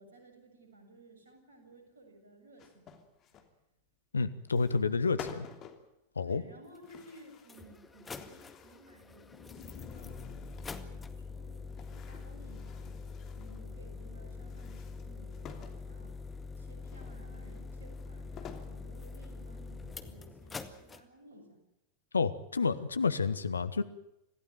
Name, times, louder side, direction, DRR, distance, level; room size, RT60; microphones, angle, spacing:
voice 1, 0.0-2.9 3.3-3.5 6.2-13.0 13.4-16.1 16.6-21.6, right 2 dB, 70° right, 7.3 m, -56 dB
sound 1, 2.6-3.5 4.5-4.9 5.2-5.9 6.8-7.7 8.0-8.9 9.4-11.0 11.7-13.6 14.4-15.8 16.8-18.8 19.3-19.4 19.9-20.7, left 8 dB, 30° left, 3.0 m, -51 dB
voice 2, 4.1-5.5 6.1-6.4 22.1-23.8, left 4 dB, 75° left, 1.3 m, -30 dB
sound 2, 6.8-6.9 7.4-21.0, left 4 dB, 15° left, 1.9 m, -44 dB
sound 3, 9.1-12.2, left 10 dB, 55° left, 3.8 m, -57 dB
26.5 x 16.0 x 9.3 m
figure-of-eight pair, 90°, 0 cm